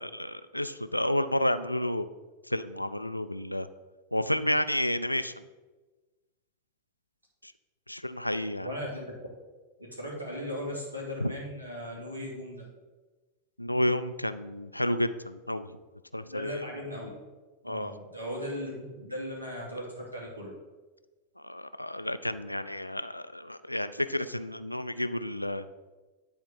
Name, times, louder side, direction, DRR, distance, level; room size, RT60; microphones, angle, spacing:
voice 1, 0.0-2.1 2.5-3.7 4.1-5.3 7.4-7.5 7.9-8.7 11.2-11.3 13.6-15.7 16.1-16.7 17.7-17.9 21.4-25.7, left 1 dB, 85° left, 12 dB, 0.4 m, -30 dB
voice 2, 8.6-9.2 9.8-12.6 16.2-17.1 17.6-20.5, equal, 85° right, -3 dB, 2.6 m, -37 dB
10.0 x 4.3 x 5.4 m, 1.2 s
figure-of-eight pair, 90°, 0 cm